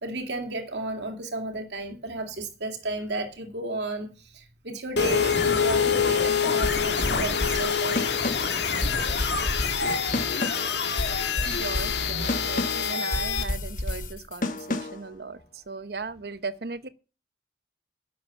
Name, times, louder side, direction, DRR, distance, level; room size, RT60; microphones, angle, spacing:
voice 1, 0.0-4.1 4.3-8.0, right 2 dB, 80° right, 2.4 m, -33 dB
sound 1, 5.0-13.4, left 6 dB, 75° left, 2.0 m, -26 dB
sound 2, 6.6-15.1, left 2 dB, 45° left, 1.4 m, -31 dB
voice 2, 11.4-15.4 15.7-16.9, right 4 dB, 65° right, 0.9 m, -37 dB
11.0 x 7.6 x 6.9 m
head